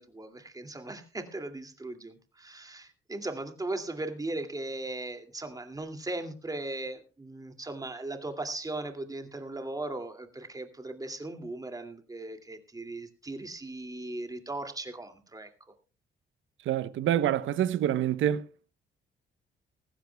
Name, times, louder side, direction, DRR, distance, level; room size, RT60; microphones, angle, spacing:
voice 1, 0.0-15.5, right 2 dB, 20° right, 2.4 m, -38 dB
voice 2, 16.6-18.5, right 11 dB, 75° right, 0.9 m, -26 dB
19.0 x 15.0 x 2.3 m
cardioid pair, 90°, 20 cm